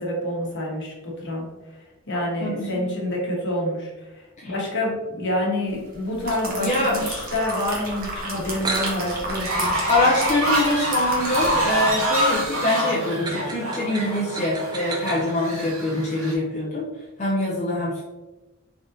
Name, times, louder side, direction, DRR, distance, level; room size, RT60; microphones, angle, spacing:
voice 1, 0.0-1.4 1.8-9.7, left 1 dB, 60° left, -3 dB, 1.2 m, -28 dB
voice 2, 2.4-2.9 4.4-4.5 6.6-7.2 9.9-16.9 17.2-18.0, left 1 dB, 35° left, -5 dB, 0.5 m, -24 dB
sound 1, 5.9-12.0 12.3-12.5, right 1 dB, 45° right, 1.0 m, -33 dB
sound 2, 8.6-15.3, right 2 dB, 20° right, 0.4 m, -35 dB
Fowl, 9.3-16.3, right 1 dB, 90° right, 1.1 m, -26 dB
3.7 x 3.4 x 2.6 m, 1.1 s
head